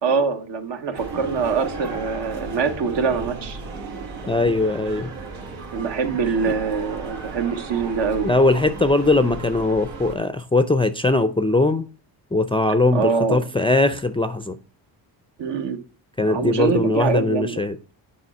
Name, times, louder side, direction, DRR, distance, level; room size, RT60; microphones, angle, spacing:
voice 1, 0.0-3.6 5.7-8.3 12.9-13.4 15.4-15.8 16.2-17.6, right 5 dB, 65° right, 1.2 m, -24 dB
sound 1, 0.9-10.2, right 4 dB, 90° right, 1.8 m, -35 dB
voice 2, 4.3-5.1 8.2-11.9 12.3-14.6 16.2-17.8, left 2 dB, 15° left, 0.4 m, -20 dB
7.0 x 4.3 x 4.2 m
cardioid pair, 90°, 46 cm